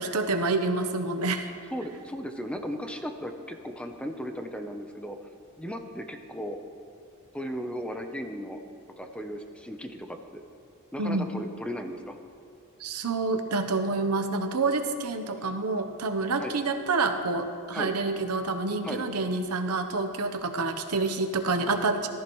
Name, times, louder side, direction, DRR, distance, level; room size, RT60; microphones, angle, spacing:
voice 1, 0.0-1.5 11.0-11.3 12.8-22.1, right 3 dB, 90° right, 7 dB, 0.9 m, -28 dB
voice 2, 1.7-5.2 5.6-6.6 7.3-8.6 9.0-10.4 10.9-12.2 16.4-16.6 17.7-17.9 18.8-19.0, equal, 5° left, 5 dB, 0.7 m, -36 dB
14.5 x 14.0 x 3.1 m, 2.4 s
head